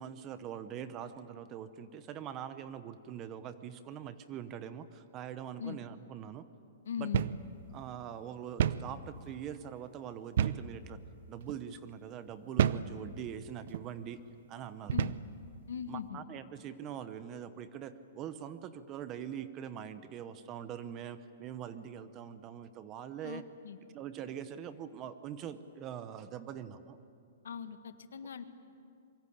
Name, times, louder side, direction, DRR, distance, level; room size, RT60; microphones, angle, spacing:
voice 1, 0.0-6.5 7.0-7.1 7.7-11.0 11.3-14.2 14.5-14.9 15.9-23.4 23.9-27.0, right 9 dB, 25° right, 12 dB, 0.8 m, -43 dB
voice 2, 6.8-7.2 14.9-15.1 15.7-16.2 23.2-23.8 27.4-28.4, left 7 dB, 90° left, 9 dB, 1.7 m, -40 dB
sound 1, 7.1-7.4 7.8-7.9 8.6-8.9 10.4-10.7 11.4-11.6 12.6-12.9 13.7-13.9 14.9-15.3, right 9 dB, 55° right, 0.7 m, -29 dB
25.5 x 23.5 x 8.6 m, 2.4 s
hypercardioid pair, 165°, 0 cm